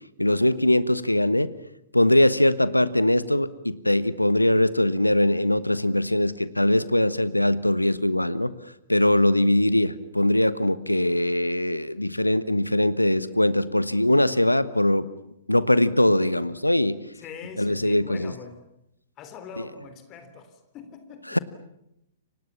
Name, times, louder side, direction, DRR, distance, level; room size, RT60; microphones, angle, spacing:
voice 1, 0.2-1.5 1.9-8.5 8.9-15.1 15.5-17.0 17.6-18.3 21.3-21.4, left 1 dB, 85° left, 16 dB, 1.3 m, -21 dB
voice 2, 17.1-18.7 19.2-21.4, left 5 dB, 30° left, 9 dB, 3.5 m, -42 dB
29.0 x 25.0 x 7.2 m, 0.83 s
figure-of-eight pair, 110°, 0 cm